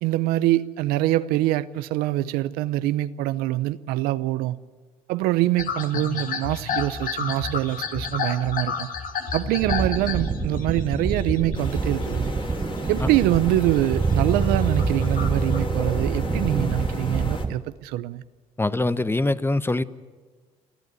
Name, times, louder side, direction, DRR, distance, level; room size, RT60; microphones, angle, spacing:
voice 1, 0.0-4.6 5.1-8.9 9.3-12.3 12.9-18.2, right 15 dB, 85° right, 0.6 m, -24 dB
sound 1, 5.6-12.4 12.7-13.8 14.1-15.6, left 5 dB, 65° left, 2.2 m, -32 dB
sound 2, 9.6-17.5, right 4 dB, 30° right, 1.2 m, -26 dB
sound 3, 11.6-17.5, left 3 dB, 35° left, 2.9 m, -36 dB
voice 2, 18.6-19.8, left 2 dB, 15° left, 1.0 m, -23 dB
29.0 x 12.0 x 9.6 m
supercardioid pair, 60°, 15 cm